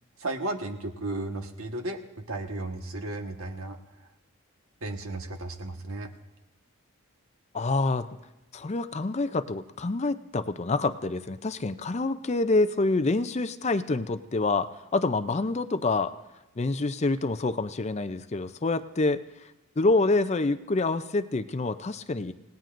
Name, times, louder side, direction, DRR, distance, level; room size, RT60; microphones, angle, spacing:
voice 1, 0.2-3.8 4.8-6.1, right 2 dB, 70° right, 4 dB, 1.4 m, -34 dB
voice 2, 7.5-8.2 8.5-16.1 16.6-19.5 19.8-22.3, left 3 dB, 30° left, 11 dB, 0.5 m, -27 dB
28.0 x 18.5 x 2.6 m, 0.97 s
head